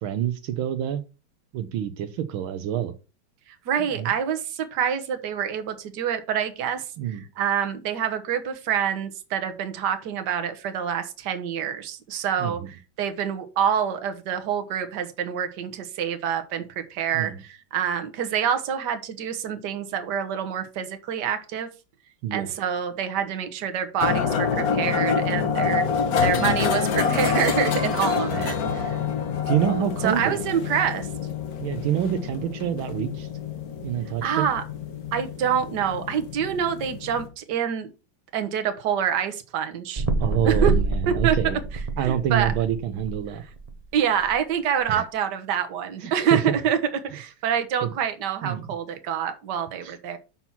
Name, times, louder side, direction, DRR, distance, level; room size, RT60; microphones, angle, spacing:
voice 1, 0.0-1.0 1.5-2.9 4.0-4.1 7.0-7.3 12.4-12.7 17.1-17.4 22.2-22.5 25.6-25.9 28.2-28.5 29.5-30.4 31.6-33.3 33.8-34.5 40.2-41.6 42.0-43.4 44.9-45.0 46.0-46.5 47.8-47.9 48.4-48.7 49.8-49.9, right 10 dB, 80° right, 9 dB, 1.5 m, -27 dB
voice 2, 3.7-6.8 7.1-21.7 22.3-25.9 26.2-29.0 30.0-31.1 34.2-34.6 35.1-37.9 38.3-40.0 40.4-40.7 41.1-41.4 42.0-42.5 43.9-46.8 47.1-50.2, right 8 dB, 60° right, 8 dB, 1.6 m, -26 dB
sound 1, 24.0-37.3, left 6 dB, 55° left, 1.3 m, -27 dB
sound 2, 40.0-43.7 44.3-44.4, right 3 dB, 45° right, 0.5 m, -26 dB
6.0 x 5.8 x 5.6 m, 0.32 s
omnidirectional pair, 2.2 m